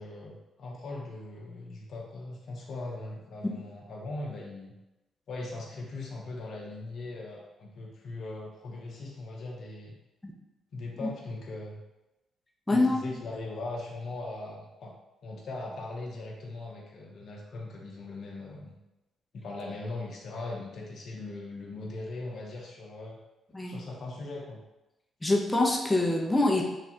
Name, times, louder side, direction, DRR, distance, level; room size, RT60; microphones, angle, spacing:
voice 1, 0.0-4.7 5.3-10.0 10.7-11.8 12.7-14.9 15.2-18.8 19.3-23.2 23.6-24.6, left 2 dB, 65° left, -2 dB, 0.6 m, -40 dB
voice 2, 12.7-13.0 23.5-23.8 25.2-26.6, left 2 dB, 15° left, -1 dB, 0.6 m, -25 dB
3.2 x 2.2 x 2.8 m, 1.0 s
hypercardioid pair, 50°, 0 cm